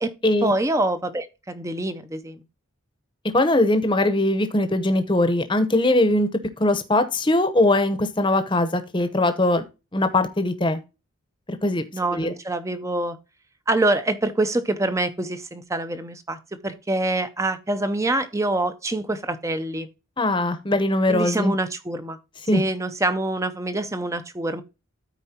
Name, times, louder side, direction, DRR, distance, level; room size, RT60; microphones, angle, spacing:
voice 1, 0.4-2.4 11.9-13.2 13.7-19.9 21.1-22.2 22.5-24.6, right 2 dB, 15° right, 0.5 m, -25 dB
voice 2, 3.3-9.6 9.9-10.8 11.6-11.8 12.1-12.3 20.2-21.5 22.5-22.6, left 2 dB, 25° left, 0.8 m, -21 dB
13.0 x 4.5 x 2.8 m
head